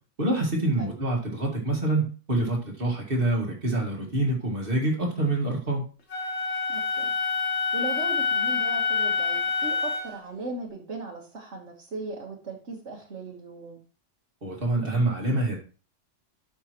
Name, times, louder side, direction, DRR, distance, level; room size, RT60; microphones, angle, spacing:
voice 1, 0.2-5.9 14.4-15.6, right 2 dB, 45° right, -1 dB, 2.3 m, -26 dB
Wind instrument woodwind instrument, 6.1-10.2, left 5 dB, 65° left, 1.8 m, -27 dB
voice 2, 6.7-7.1 7.7-13.8, right 3 dB, 65° right, -3 dB, 1.8 m, -38 dB
12.5 x 5.5 x 3.1 m, 0.36 s
omnidirectional pair, 1.3 m